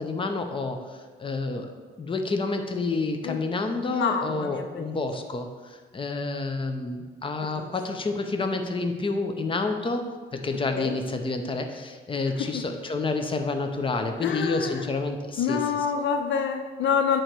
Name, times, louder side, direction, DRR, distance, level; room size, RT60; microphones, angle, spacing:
voice 1, 0.0-1.7 2.0-10.0 10.3-15.6, left 3 dB, 25° left, 5 dB, 0.7 m, -29 dB
voice 2, 3.9-5.0 7.6-7.7 10.8-10.9 14.2-14.9 15.4-17.2, left 7 dB, 70° left, 7 dB, 0.5 m, -27 dB
8.7 x 3.1 x 4.5 m, 1.4 s
cardioid pair, 90°, 20 cm